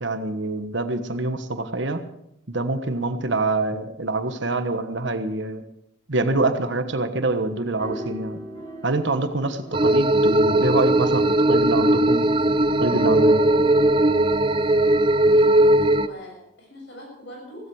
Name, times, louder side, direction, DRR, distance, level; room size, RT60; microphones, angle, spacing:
voice 1, 0.0-2.0 2.5-5.6 6.1-8.4 8.8-12.2 12.8-13.4, right 2 dB, 60° right, 9 dB, 1.3 m, -25 dB
sound 1, 7.8-11.0 12.6-14.9, left 1 dB, 25° left, 5.6 m, -38 dB
sound 2, 9.7-16.1, right 1 dB, 25° right, 0.5 m, -18 dB
voice 2, 15.3-17.7, equal, 60° left, 0 dB, 7.3 m, -41 dB
16.5 x 16.0 x 4.8 m, 0.76 s
head